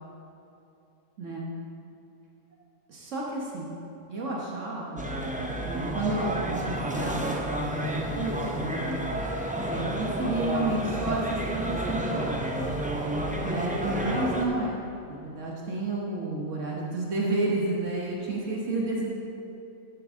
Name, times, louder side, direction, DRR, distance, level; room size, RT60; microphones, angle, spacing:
voice 1, 1.2-1.5 2.9-3.8 4.1-5.1 5.6-8.9 9.6-12.6 13.4-14.8 15.1-19.1, right 2 dB, 75° right, -3 dB, 1.5 m, -31 dB
sound 1, 5.0-14.5, right 1 dB, 10° right, 0.4 m, -30 dB
12.0 x 8.7 x 3.6 m, 2.7 s
omnidirectional pair, 1.3 m